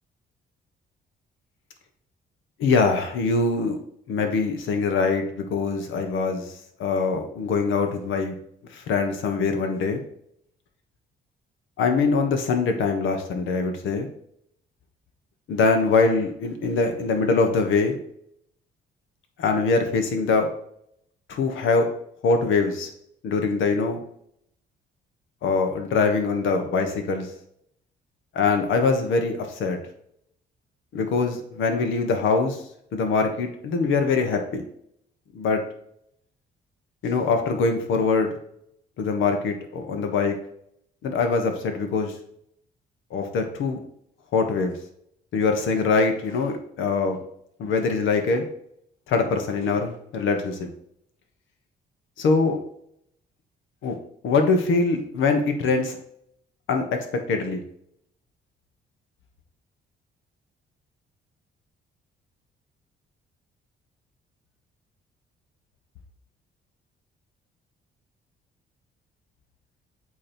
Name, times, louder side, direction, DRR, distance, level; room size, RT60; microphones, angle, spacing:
voice 1, 2.6-3.8 4.1-6.5 6.8-8.3 8.7-10.0 11.8-14.1 15.5-18.0 19.4-20.5 21.3-21.9 22.2-22.9 23.2-24.0 25.4-27.3 28.3-29.8 30.9-32.6 32.9-34.6 35.3-35.6 37.0-38.3 39.0-40.4 41.0-42.1 43.1-43.8 44.3-44.7 45.3-47.2 47.6-48.4 49.1-50.7 52.2-52.6 53.8-53.9 54.2-56.0 56.7-57.6, left 4 dB, 80° left, 5 dB, 1.2 m, -23 dB
8.4 x 3.1 x 4.5 m, 0.70 s
cardioid pair, 90°, 20 cm